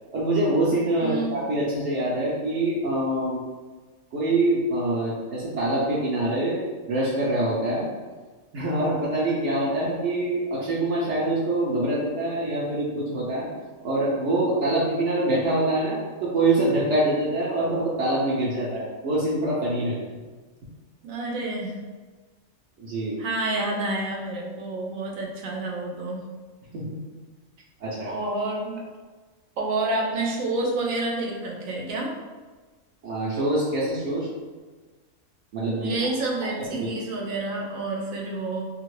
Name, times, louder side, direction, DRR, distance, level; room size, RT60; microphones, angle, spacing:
voice 1, 0.1-3.4 4.1-7.9 8.5-13.5 13.8-20.0 22.8-23.2 26.7-27.0 27.8-28.1 33.0-34.3 35.5-36.1 36.7-36.9, right 1 dB, 65° right, -7 dB, 0.9 m, -25 dB
voice 2, 1.0-1.4 21.0-21.8 23.2-26.2 28.1-28.8 29.6-32.1 35.8-38.7, right 2 dB, 85° right, -1 dB, 1.0 m, -29 dB
2.7 x 2.5 x 3.1 m, 1.3 s
omnidirectional pair, 1.4 m